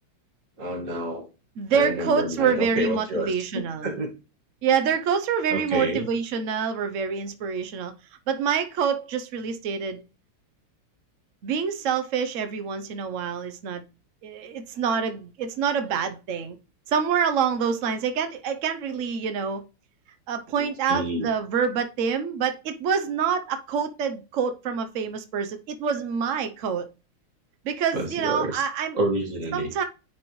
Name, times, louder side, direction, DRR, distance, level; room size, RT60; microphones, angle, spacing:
voice 1, 0.6-1.3 1.7-4.1 5.5-6.1 20.6-21.3 27.9-28.6 28.9-29.9, right 1 dB, 40° right, 1.9 m, -29 dB
voice 2, 1.6-3.9 4.6-7.9 8.3-10.0 11.4-13.8 14.2-16.6 16.9-19.6 20.3-26.9 27.6-29.0 29.5-29.8, right 6 dB, 80° right, 0.6 m, -26 dB
9.5 x 4.4 x 3.0 m
omnidirectional pair, 2.3 m